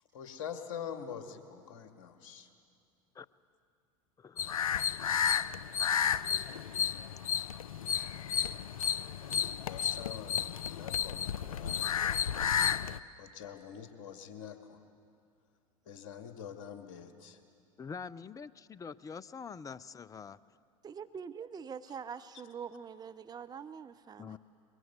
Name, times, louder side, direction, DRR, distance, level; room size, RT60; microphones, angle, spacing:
voice 1, 0.1-2.5 9.6-12.2 13.2-14.8 15.9-17.4 24.3-24.4, left 8 dB, 65° left, 6 dB, 2.0 m, -45 dB
voice 2, 4.2-4.6 17.8-20.4 24.2-24.4, left 6 dB, 20° left, 19 dB, 0.6 m, -45 dB
sound 1, 4.4-13.0, left 8 dB, 85° left, 0.5 m, -32 dB
voice 3, 20.8-24.4, right 6 dB, 20° right, 12 dB, 0.7 m, -44 dB
22.5 x 22.0 x 8.1 m, 2.4 s
hypercardioid pair, 80°, 17 cm